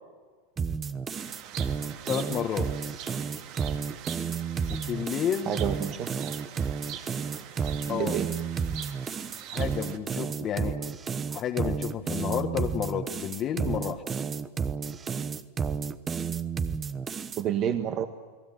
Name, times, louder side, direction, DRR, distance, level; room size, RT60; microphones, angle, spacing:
sound 1, 0.6-17.4, right 6 dB, 20° right, 1.0 m, -31 dB
sound 2, 1.1-10.0, right 10 dB, 50° right, 2.4 m, -44 dB
voice 1, 2.1-2.7 4.7-5.6 7.9-8.1 9.5-10.8 11.3-14.0, left 9 dB, 35° left, 2 dB, 1.5 m, -31 dB
voice 2, 5.4-6.4 7.8-8.3 17.4-18.1, right 9 dB, 35° right, 7 dB, 1.5 m, -29 dB
29.0 x 19.5 x 7.7 m, 1.5 s
supercardioid pair, 140°, 0 cm